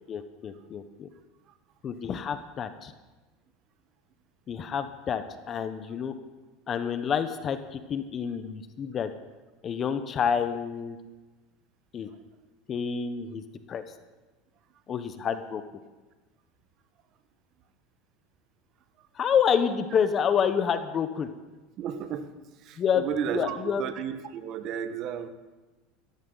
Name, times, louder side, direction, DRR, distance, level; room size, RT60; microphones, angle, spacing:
voice 1, 0.1-1.1 1.8-2.9 4.5-6.1 6.7-9.1 9.6-11.0 11.9-12.1 12.7-13.4 13.7-13.8 14.9-15.6 19.1-21.3 22.8-23.0 23.3-23.8, left 7 dB, 35° left, 10 dB, 1.0 m, -28 dB
voice 2, 21.8-22.3 22.6-25.3, right 8 dB, 50° right, 9 dB, 1.3 m, -33 dB
17.0 x 14.0 x 4.0 m, 1.2 s
supercardioid pair, 115°, 0 cm